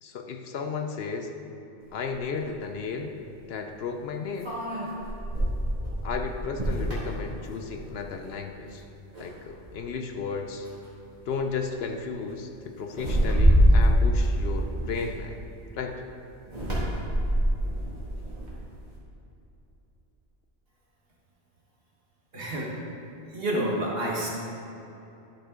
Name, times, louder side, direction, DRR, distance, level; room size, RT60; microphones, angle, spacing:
voice 1, 0.0-1.3 1.9-3.1 3.5-4.5 6.0-8.8 9.2-10.7 11.3-15.4 15.8-16.0, left 5 dB, 65° left, 4 dB, 0.8 m, -34 dB
sound 1, 2.1-2.2 4.4-8.0 8.4-8.7 9.1-9.8 10.7-10.9 11.2-11.5 12.9-15.5 16.4-18.9, equal, 40° right, 2.2 m, -25 dB
voice 2, 22.3-22.7 23.3-24.3, right 1 dB, 55° right, -3 dB, 1.7 m, -28 dB
11.5 x 5.7 x 3.7 m, 3.0 s
omnidirectional pair, 1.2 m